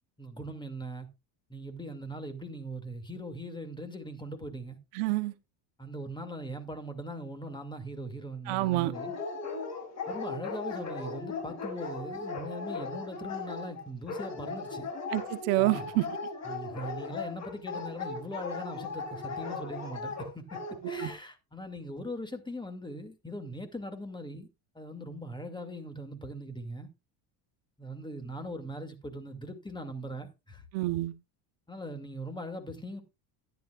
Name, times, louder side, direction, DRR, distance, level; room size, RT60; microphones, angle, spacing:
voice 1, 0.2-1.1 1.5-4.8 5.8-9.2 10.1-14.9 15.6-15.9 16.4-20.6 20.9-24.5 24.7-26.9 27.8-30.7 31.7-33.0, equal, 10° left, 2.4 m, -40 dB
voice 2, 5.0-5.3 8.5-8.9 15.1-16.0 20.8-21.1 30.7-31.1, right 18 dB, 80° right, 1.1 m, -28 dB
Dog, 8.9-21.1, left 4 dB, 35° left, 5.5 m, -37 dB
13.5 x 10.5 x 2.4 m
supercardioid pair, 105°, 47 cm